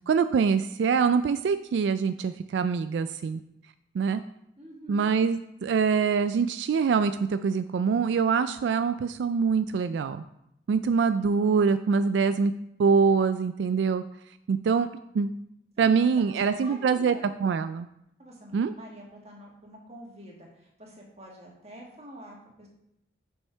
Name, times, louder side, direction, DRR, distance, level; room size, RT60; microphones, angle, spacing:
voice 1, 0.1-3.4 3.9-4.2 4.9-10.2 10.7-12.5 12.8-14.0 14.5-14.9 15.1-15.3 15.8-17.9 18.5-18.7, right 5 dB, 90° right, 11 dB, 0.3 m, -24 dB
voice 2, 4.6-5.1 15.8-17.3 18.2-22.7, equal, 35° right, -1 dB, 1.7 m, -47 dB
7.2 x 5.5 x 4.5 m, 0.78 s
head